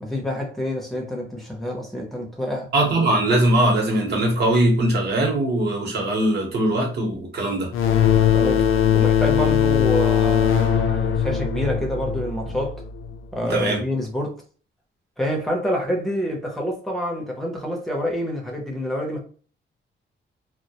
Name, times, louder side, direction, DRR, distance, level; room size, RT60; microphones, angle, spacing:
voice 1, 0.0-2.7 8.3-12.8 13.3-14.3 15.2-19.2, equal, ahead, 0.5 m, -27 dB
voice 2, 2.7-7.7 13.5-13.8, right 1 dB, 55° right, 0.8 m, -21 dB
sound 1, 7.7-13.2, left 9 dB, 85° left, 0.4 m, -20 dB
2.3 x 2.1 x 2.7 m
wide cardioid pair, 180°, 21 cm